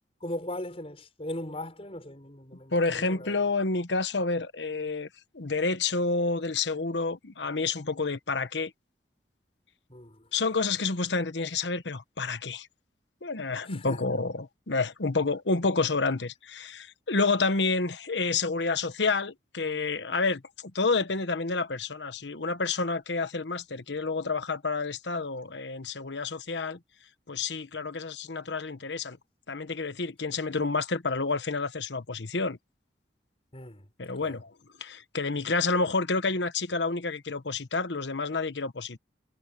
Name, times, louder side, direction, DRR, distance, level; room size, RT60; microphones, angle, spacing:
voice 1, 0.2-3.4 9.9-10.3 13.7-14.2 33.5-33.9 34.2-34.4, left 1 dB, 35° left, 6.2 m, -39 dB
voice 2, 2.7-5.1 5.3-8.7 10.3-12.7 13.2-26.8 27.3-29.2 29.5-32.6 34.0-34.5 34.8-39.0, left 3 dB, 85° left, 1.2 m, -29 dB
head